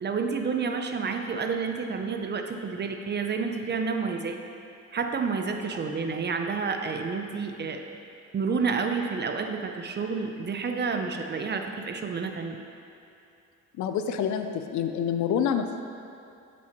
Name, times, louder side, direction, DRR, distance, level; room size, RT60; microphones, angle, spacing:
voice 1, 0.0-4.4 4.9-8.0 8.3-12.6, right 5 dB, 35° right, 5 dB, 0.5 m, -29 dB
voice 2, 13.8-15.8, left 8 dB, 70° left, 8 dB, 0.5 m, -27 dB
7.5 x 6.0 x 2.9 m, 2.6 s
cardioid pair, 90°, 30 cm